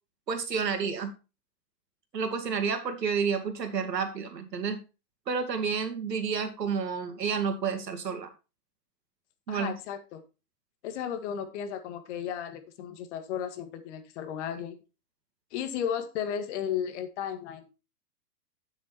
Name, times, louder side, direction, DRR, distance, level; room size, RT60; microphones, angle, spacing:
voice 1, 0.3-1.1 2.1-4.8 5.3-8.3 9.5-9.8, right 6 dB, 85° right, 6 dB, 2.5 m, -30 dB
voice 2, 9.5-10.2 10.8-14.8 15.5-17.7, left 8 dB, 45° left, 9 dB, 1.9 m, -34 dB
9.4 x 7.3 x 4.3 m, 0.30 s
hypercardioid pair, 130°, 48 cm